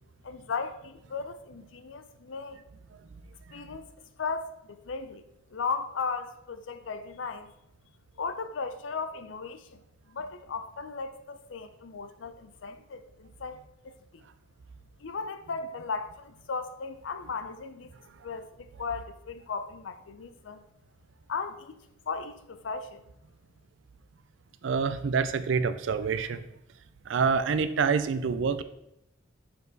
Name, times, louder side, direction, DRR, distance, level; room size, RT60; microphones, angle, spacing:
voice 1, 0.2-2.6 3.5-3.9 4.2-5.2 5.5-7.5 8.2-9.8 10.1-13.6 13.8-13.9 15.0-17.9 18.2-20.6 21.3-21.8 22.1-23.0, left 5 dB, 90° left, 0.5 m, -36 dB
voice 2, 24.6-26.4 27.1-28.6, right 5 dB, 75° right, 0.4 m, -26 dB
5.2 x 4.6 x 3.9 m
head